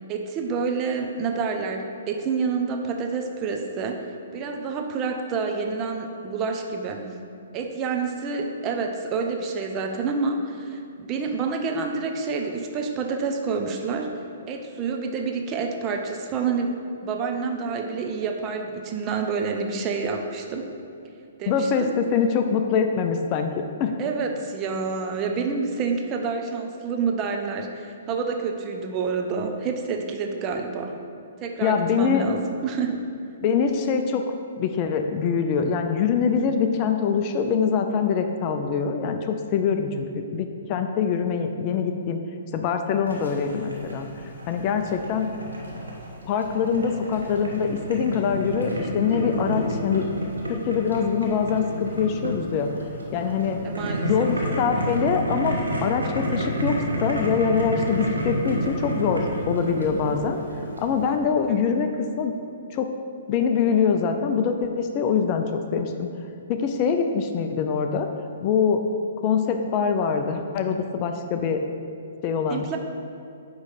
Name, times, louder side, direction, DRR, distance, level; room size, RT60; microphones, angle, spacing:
voice 1, 0.1-4.0 4.3-7.0 7.5-14.1 14.5-20.7 21.4-21.9 24.0-30.9 31.4-33.0 53.6-54.3 61.5-61.8 72.5-72.8, right 5 dB, 30° right, 3 dB, 0.6 m, -28 dB
voice 2, 21.5-23.9 31.6-32.2 33.4-34.2 34.6-40.1 40.3-42.2 42.5-44.1 44.5-45.3 46.3-50.1 50.5-52.7 53.1-53.6 54.0-60.4 60.8-62.3 62.7-62.9 63.3-66.1 66.5-68.1 68.4-68.8 69.2-71.6 72.2-72.6, left 6 dB, 35° left, 6 dB, 0.4 m, -24 dB
Boiling, 43.1-61.1, right 1 dB, 85° right, 1.1 m, -30 dB
9.2 x 3.1 x 4.2 m, 2.6 s
figure-of-eight pair, 125°, 0 cm